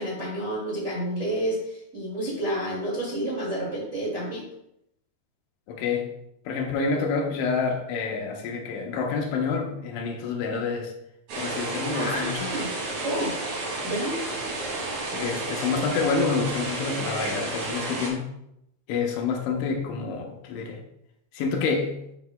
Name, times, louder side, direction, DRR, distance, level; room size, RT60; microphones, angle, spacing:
voice 1, 0.0-4.5 11.9-12.7 13.0-13.3 13.8-14.2, right 1 dB, 35° right, -6 dB, 1.2 m, -29 dB
voice 2, 5.7-6.1 6.5-10.9 11.4-12.6 15.1-18.3 18.9-20.8 21.3-22.1, left 5 dB, 80° left, 1 dB, 3.2 m, -28 dB
water flow dam distant loop, 11.3-18.1, right 2 dB, 85° right, 5.1 m, -31 dB
11.5 x 5.4 x 2.2 m, 0.79 s
omnidirectional pair, 5.6 m